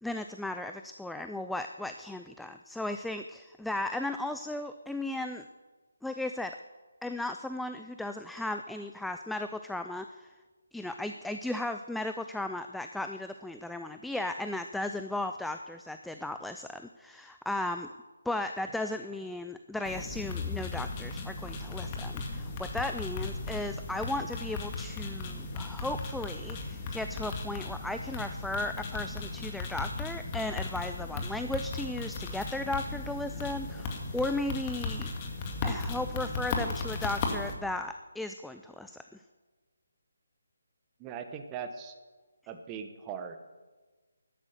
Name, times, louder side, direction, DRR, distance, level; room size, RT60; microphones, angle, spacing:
voice 1, 0.0-5.4 6.0-6.6 7.0-10.3 10.7-17.9 18.3-35.1 35.6-39.2, left 2 dB, ahead, 7 dB, 0.4 m, -36 dB
sound 1, 19.8-37.5, left 3 dB, 25° left, 2.1 m, -36 dB
voice 2, 41.0-42.0 42.5-43.4, right 7 dB, 15° right, 7 dB, 1.2 m, -40 dB
14.0 x 12.0 x 6.7 m, 1.3 s
figure-of-eight pair, 150°, 0 cm